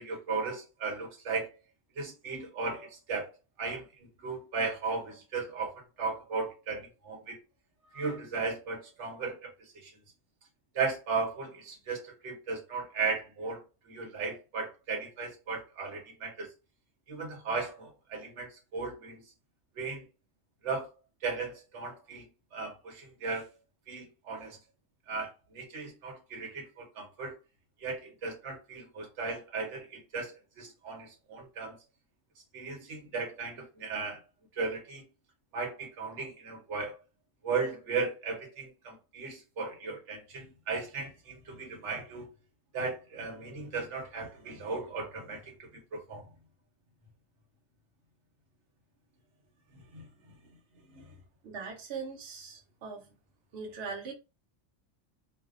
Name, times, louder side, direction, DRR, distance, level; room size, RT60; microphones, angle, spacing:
voice 1, 0.0-1.5 2.0-3.3 3.6-7.4 7.9-9.5 9.8-9.9 10.7-16.5 17.1-19.2 19.8-20.0 20.6-20.9 21.2-22.3 22.5-23.5 23.9-24.6 25.1-27.4 27.8-31.8 32.5-34.2 34.5-35.0 35.5-36.9 37.4-42.3 42.7-46.3 49.9-50.1 50.9-51.1, right 4 dB, 85° right, 1.1 m, -36 dB
voice 2, 51.4-53.1 53.5-54.1, right 5 dB, 65° right, 0.9 m, -40 dB
2.6 x 2.0 x 2.4 m
omnidirectional pair, 1.2 m